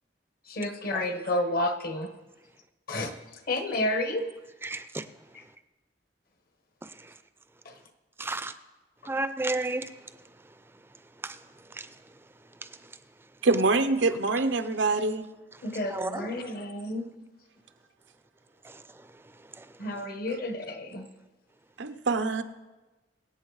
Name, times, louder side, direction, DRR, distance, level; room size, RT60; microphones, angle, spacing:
voice 1, 0.5-2.1 2.9-3.1 3.5-4.2 7.6-7.7 15.6-17.0 19.8-21.1, left 1 dB, 55° left, 1.1 m, -30 dB
voice 2, 4.6-5.0 6.8-6.9 8.2-8.5 9.0-9.9 11.2-11.4 11.7-11.9 15.9-16.3 18.6-18.8 19.6-19.7, right 2 dB, 15° right, 0.5 m, -32 dB
voice 3, 13.4-15.3 20.3-20.4 21.8-22.4, right 3 dB, 85° right, 0.8 m, -25 dB
23.5 x 8.6 x 3.2 m
head